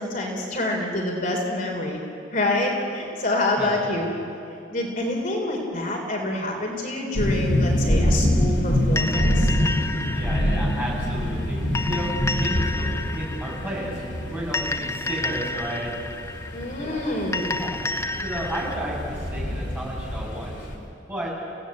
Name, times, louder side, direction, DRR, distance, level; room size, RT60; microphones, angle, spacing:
voice 1, 0.0-2.0 2.3-4.1 4.7-9.5 16.5-17.6, left 1 dB, 45° left, 0 dB, 3.6 m, -27 dB
voice 2, 3.6-4.0 10.1-14.0 14.3-16.1 16.8-17.0 17.3-20.6 21.1-21.3, right 1 dB, 10° right, -5 dB, 6.4 m, -33 dB
sound 1, 7.1-20.8, equal, 65° left, 3.9 m, -26 dB
sound 2, 9.0-18.7, left 2 dB, 15° left, 0.6 m, -31 dB
29.0 x 17.5 x 8.5 m, 2.7 s
head